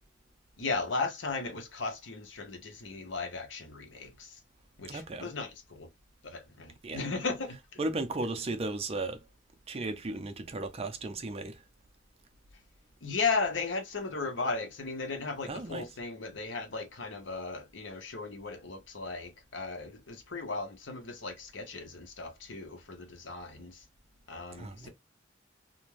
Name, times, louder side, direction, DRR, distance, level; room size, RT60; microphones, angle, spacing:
voice 1, 0.6-4.4 4.8-5.9 6.2-7.8 13.0-23.8 24.3-24.9, left 4 dB, 85° left, 0.8 m, -36 dB
voice 2, 4.9-5.3 6.8-7.1 7.8-9.2 9.7-11.5 15.4-15.9 24.6-24.9, right 2 dB, 30° right, 0.5 m, -35 dB
2.5 x 2.2 x 3.1 m
head